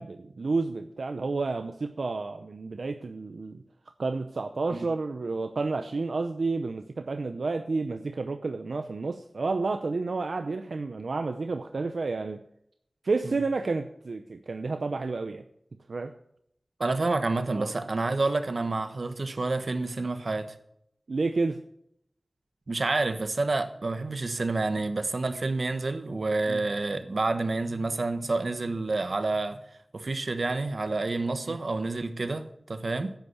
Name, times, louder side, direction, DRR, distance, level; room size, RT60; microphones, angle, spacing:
voice 1, 0.0-3.6 4.0-12.4 13.0-15.4 15.9-16.1 17.5-17.7 21.1-21.6 26.5-26.6 31.5-31.6, right 3 dB, 90° right, 0.7 m, -30 dB
voice 2, 16.8-20.5 22.7-29.6 29.9-33.1, right 3 dB, 70° right, 1.2 m, -29 dB
10.5 x 8.1 x 8.2 m
wide cardioid pair, 55°, 0 cm